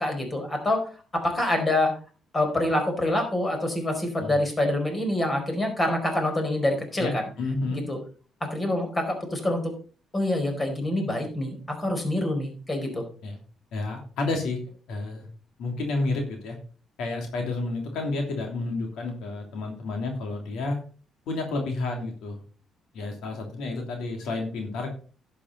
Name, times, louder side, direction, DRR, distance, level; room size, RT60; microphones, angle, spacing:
voice 1, 0.0-1.9 2.3-7.3 7.7-8.0 8.4-9.7 10.1-13.0, left 1 dB, 25° left, 4 dB, 4.7 m, -26 dB
voice 2, 7.4-7.8 13.2-13.4 13.7-14.6 14.9-15.3 15.6-16.6 17.0-20.8 21.3-22.4 22.9-24.9, left 3 dB, 80° left, 2 dB, 3.0 m, -30 dB
11.0 x 8.3 x 4.1 m, 0.39 s
cardioid pair, 90°, 0 cm